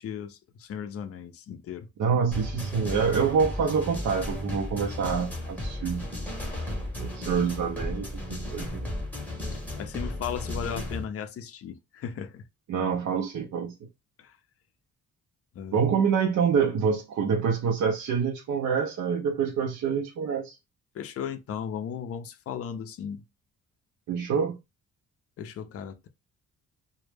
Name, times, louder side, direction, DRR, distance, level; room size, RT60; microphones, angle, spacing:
voice 1, 0.0-1.9 9.5-12.5 14.2-14.4 15.6-15.9 20.9-23.2 25.4-26.1, left 8 dB, 50° left, 0.4 m, -36 dB
voice 2, 2.0-6.1 7.0-9.0 12.7-13.7 15.7-20.6 24.1-24.6, right 6 dB, 65° right, 0.5 m, -26 dB
sound 1, 2.3-11.0, left 1 dB, 5° left, 0.8 m, -34 dB
2.1 x 2.0 x 3.2 m
cardioid pair, 105°, 31 cm